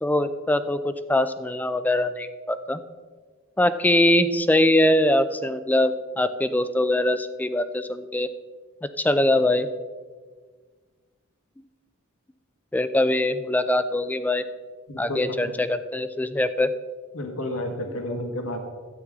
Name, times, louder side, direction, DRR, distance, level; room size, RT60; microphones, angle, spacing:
voice 1, 0.0-2.8 3.6-8.3 9.0-9.7 12.7-14.4 15.0-16.7, left 1 dB, 10° left, 12 dB, 0.4 m, -22 dB
voice 2, 14.9-15.2 17.1-18.7, left 1 dB, 65° left, 4 dB, 1.4 m, -31 dB
12.5 x 8.9 x 3.6 m, 1.5 s
head